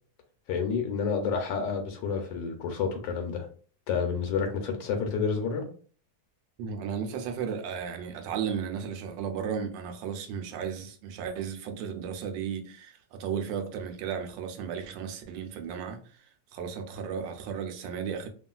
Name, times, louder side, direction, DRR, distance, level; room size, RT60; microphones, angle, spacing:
voice 1, 0.5-3.5 3.9-5.6, left 5 dB, 85° left, 1.3 m, -29 dB
voice 2, 6.6-18.3, right 7 dB, 90° right, 1.3 m, -34 dB
3.0 x 2.4 x 2.2 m
omnidirectional pair, 2.0 m